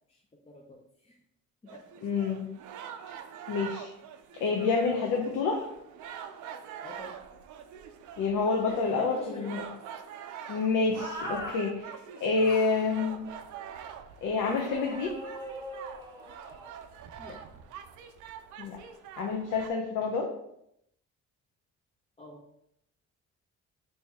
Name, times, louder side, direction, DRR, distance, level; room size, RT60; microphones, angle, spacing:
voice 1, 0.5-1.2 1.6-1.8 6.8-7.2 8.6-9.7 10.9-11.0 17.2-17.4 22.2-22.4, left 2 dB, 20° left, -2 dB, 0.5 m, -44 dB
sound 1, 1.7-19.7, right 8 dB, 75° right, 0.5 m, -45 dB
voice 2, 2.0-2.5 3.5-3.9 4.4-5.6 8.2-9.7 10.5-13.2 14.2-15.2 18.6-18.8 19.2-20.3, left 4 dB, 80° left, 1 dB, 0.6 m, -28 dB
sound 2, 11.0-11.6 12.4-12.9 14.4-16.7, right 1 dB, 15° right, 0.9 m, -40 dB
3.4 x 2.6 x 3.3 m, 0.76 s
cardioid pair, 90°, 30 cm